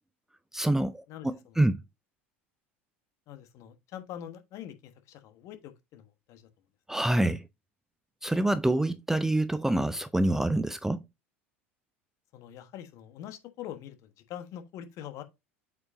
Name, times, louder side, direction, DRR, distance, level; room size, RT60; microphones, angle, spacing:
voice 1, 0.5-1.8 6.9-7.4 8.2-11.0, right 1 dB, 5° right, 0.4 m, -26 dB
voice 2, 1.1-1.6 3.3-6.5 6.9-7.0 12.3-15.2, left 10 dB, 50° left, 1.2 m, -44 dB
8.1 x 5.1 x 2.6 m
hypercardioid pair, 75°, 7 cm